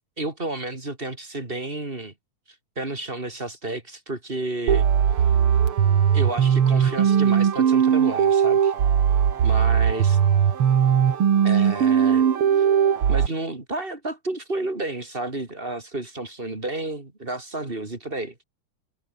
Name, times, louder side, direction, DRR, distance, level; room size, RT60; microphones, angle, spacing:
voice 1, 0.2-2.1 2.8-4.9 6.1-8.7 9.4-10.2 11.4-12.3 12.5-12.7 13.1-18.4, right 2 dB, 25° right, 3.4 m, -31 dB
psc puredata synth, 4.7-13.3, right 8 dB, 90° right, 2.7 m, -19 dB
omnidirectional pair, 2.3 m